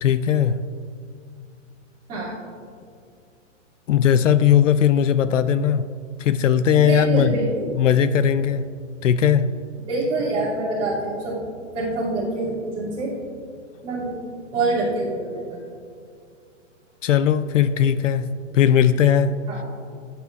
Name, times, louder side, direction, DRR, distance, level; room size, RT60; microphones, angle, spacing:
voice 1, 0.0-0.6 3.9-5.8 6.2-7.3 7.7-8.6 9.0-9.5 17.0-18.3 18.5-19.6, left 9 dB, 75° left, 13 dB, 0.6 m, -18 dB
voice 2, 6.7-7.7 9.9-11.4 11.7-13.1 13.8-14.1 14.5-15.6 19.5-19.6, right 2 dB, 15° right, -10 dB, 2.8 m, -25 dB
15.0 x 9.8 x 2.5 m, 2.3 s
hypercardioid pair, 180°, 38 cm